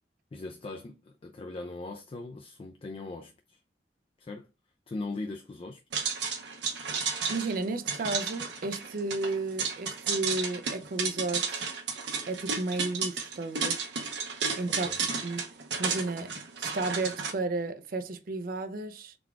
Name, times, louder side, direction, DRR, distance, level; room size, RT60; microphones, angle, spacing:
voice 1, 0.3-3.6 4.2-4.5 4.9-6.1 14.7-15.0, left 2 dB, 30° left, 0.3 m, -40 dB
sound 1, 5.9-17.3, right 5 dB, 75° right, 0.9 m, -33 dB
voice 2, 7.3-11.6 12.3-13.9 14.6-14.9 15.2-15.5 15.8-16.3 16.6-19.1, right 2 dB, 55° right, 0.4 m, -33 dB
3.9 x 2.3 x 4.6 m
head